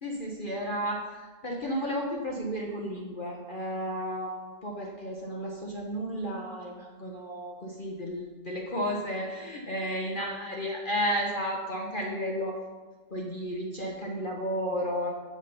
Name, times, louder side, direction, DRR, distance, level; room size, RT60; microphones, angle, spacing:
voice 1, 0.0-12.5 13.1-15.1, equal, 35° left, -1 dB, 1.0 m, -33 dB
7.2 x 6.5 x 5.5 m, 1.3 s
omnidirectional pair, 1.8 m